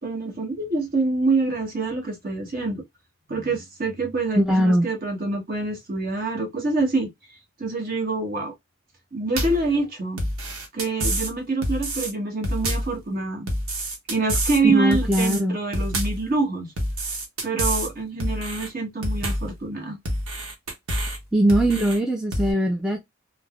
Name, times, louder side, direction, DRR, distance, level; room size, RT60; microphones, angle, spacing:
voice 1, 0.0-2.8 3.3-7.1 7.6-8.5 9.1-10.2 10.7-13.5 14.1-16.7 17.4-20.0, right 3 dB, 45° right, 1.0 m, -26 dB
voice 2, 4.4-4.9 14.7-15.6 21.3-23.0, right 1 dB, 5° right, 0.3 m, -21 dB
sound 1, 9.4-9.7 10.2-11.3 11.6-12.1 12.4-12.9 13.5-14.6 14.9-15.4 15.7-16.2 16.8-17.9 18.2-18.7 19.0-19.5 20.0-21.2 21.5-22.0 22.3-22.5, right 1 dB, 80° right, 0.9 m, -27 dB
3.2 x 2.0 x 2.3 m
head